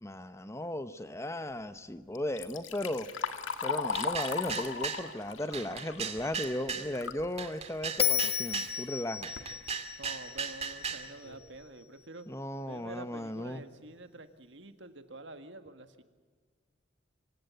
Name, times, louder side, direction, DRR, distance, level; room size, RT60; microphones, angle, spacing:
voice 1, 0.0-3.1 3.6-9.3 12.3-13.6, left 1 dB, 15° left, 11 dB, 1.1 m, -36 dB
Liquid, 2.2-7.3 7.7-7.8 8.7-8.8 9.2-9.5 10.1-10.2 10.7-10.8 11.2-11.5, left 5 dB, 80° left, 1.9 m, -37 dB
sound 1, 3.9-5.1 5.5-6.9 7.4-8.8 9.2-11.1, right 6 dB, 35° right, 2.2 m, -37 dB
Bell, 8.0-11.2, left 9 dB, 30° left, 1.4 m, -33 dB
voice 2, 10.0-12.3 12.7-16.0, right 2 dB, 65° right, 8 dB, 1.9 m, -47 dB
26.0 x 17.0 x 8.4 m, 1.5 s
head